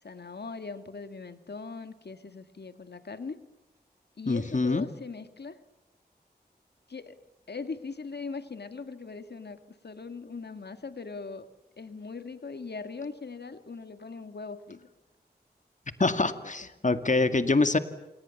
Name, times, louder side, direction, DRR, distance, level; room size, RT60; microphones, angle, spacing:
voice 1, 0.0-3.4 4.2-5.6 6.9-7.2 7.5-11.5 11.8-14.9 16.1-16.5, left 4 dB, 80° left, 9 dB, 2.0 m, -40 dB
voice 2, 4.3-4.9 16.0-17.8, left 3 dB, 50° left, 9 dB, 2.1 m, -25 dB
28.5 x 28.5 x 7.1 m, 1.0 s
wide cardioid pair, 65°, 17 cm